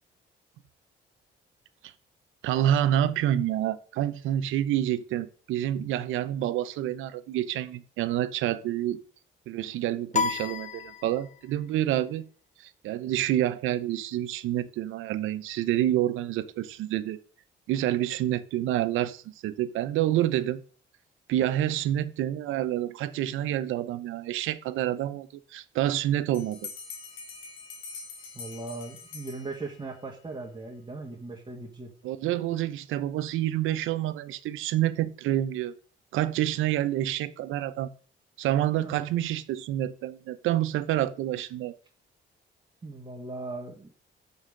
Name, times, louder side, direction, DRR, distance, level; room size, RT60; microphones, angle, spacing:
voice 1, 2.4-9.0 9.5-12.2 12.6-17.2 17.7-20.6 21.3-26.7 32.0-35.7 36.1-37.9 38.4-41.8, right 12 dB, 90° right, 0.7 m, -28 dB
sound 1, 10.1-11.6, left 5 dB, 35° left, 0.6 m, -31 dB
Bell, 26.3-30.0, left 5 dB, 85° left, 2.0 m, -43 dB
voice 2, 28.3-31.9 38.8-39.1 42.8-43.9, right 3 dB, 25° right, 1.9 m, -38 dB
6.4 x 5.6 x 6.5 m
cardioid pair, 90°, 20 cm